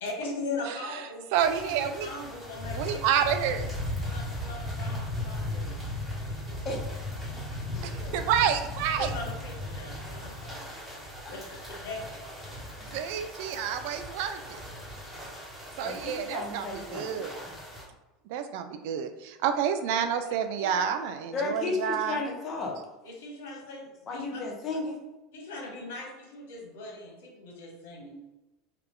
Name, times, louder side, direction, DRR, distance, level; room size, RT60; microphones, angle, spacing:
voice 1, 0.0-1.3 1.6-3.6 4.0-5.7 6.2-6.7 7.2-7.4 9.0-10.6 11.3-11.4 11.8-12.2 20.6-20.7 23.0-24.4 25.3-28.2, left 3 dB, 85° left, -1 dB, 1.0 m, -40 dB
voice 2, 0.7-1.0 1.3-2.1 2.7-3.7 7.8-9.1 12.9-14.6 15.8-17.3 18.3-22.2, right 8 dB, 70° right, 8 dB, 0.4 m, -29 dB
sound 1, 1.3-17.8, left 1 dB, 5° right, 1.2 m, -37 dB
voice 3, 7.7-8.2 9.0-9.1 10.4-10.6 11.2-11.8 12.8-13.0 15.8-17.6 21.3-22.8 24.1-25.0, left 3 dB, 35° left, 0 dB, 0.9 m, -35 dB
3.3 x 2.3 x 3.5 m, 1.1 s
supercardioid pair, 115°, 0 cm